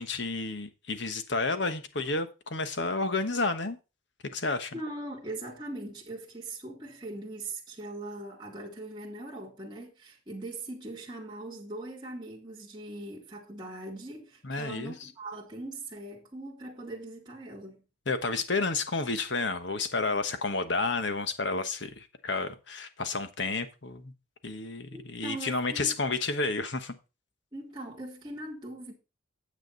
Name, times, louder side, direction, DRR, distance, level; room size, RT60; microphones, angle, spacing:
voice 1, 0.0-3.8 4.3-4.8 14.4-15.1 18.1-24.1 24.4-26.9, left 3 dB, 60° left, 1.2 m, -31 dB
voice 2, 4.7-17.8 24.9-26.0 27.5-28.9, right 2 dB, 20° right, 2.2 m, -41 dB
9.3 x 7.6 x 4.1 m
head